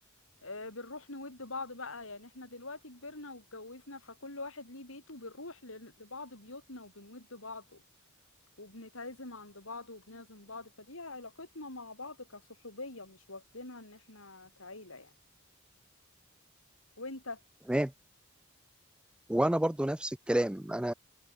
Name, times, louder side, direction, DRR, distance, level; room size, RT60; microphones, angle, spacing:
voice 1, 0.4-7.8 8.6-15.1 17.0-17.4, left 2 dB, 70° left, 6.1 m, -44 dB
voice 2, 19.3-20.9, right 1 dB, 5° right, 0.4 m, -29 dB
head